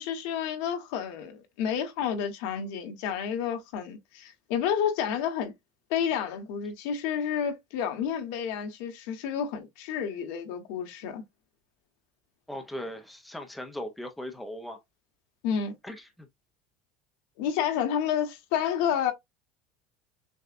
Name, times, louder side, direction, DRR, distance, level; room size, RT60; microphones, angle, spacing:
voice 1, 0.0-5.5 5.9-11.2 15.4-15.7 17.4-19.1, left 8 dB, 70° left, 1.2 m, -30 dB
voice 2, 12.5-14.8 15.8-16.3, left 1 dB, 5° left, 0.6 m, -38 dB
6.5 x 2.3 x 2.5 m
cardioid pair, 165°, 0 cm